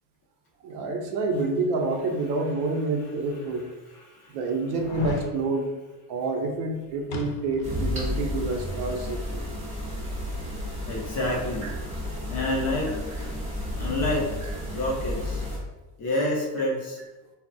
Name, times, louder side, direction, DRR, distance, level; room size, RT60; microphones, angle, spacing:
voice 1, 0.6-3.7 4.3-5.7 6.1-9.5 11.6-11.7 14.4-14.5, right 3 dB, 60° right, 3 dB, 0.6 m, -28 dB
sound 1, 2.8-2.9 3.5-3.6 4.7-5.3 7.1-7.8 8.1-8.2, left 3 dB, 90° left, 0.7 m, -33 dB
voice 2, 3.8-4.4 10.8-11.7 12.3-12.9 13.8-14.3 14.7-15.4 16.0-17.0, left 1 dB, 30° left, -3 dB, 0.6 m, -28 dB
sound 2, 7.6-15.6, left 1 dB, 15° right, 0.7 m, -32 dB
2.2 x 2.0 x 3.8 m, 1.1 s
cardioid pair, 155°, 50 cm